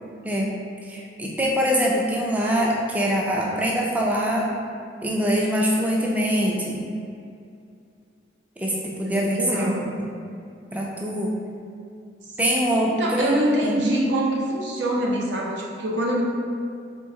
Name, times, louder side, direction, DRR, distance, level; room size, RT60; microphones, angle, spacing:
voice 1, 0.2-0.6 0.8-4.5 5.0-6.9 8.6-9.9 10.7-11.3 12.4-13.4 13.6-13.8, equal, 10° right, -2 dB, 0.4 m, -23 dB
voice 2, 9.0-9.9 13.0-16.2, right 1 dB, 80° right, -2 dB, 0.8 m, -24 dB
3.7 x 3.4 x 3.9 m, 2.4 s
head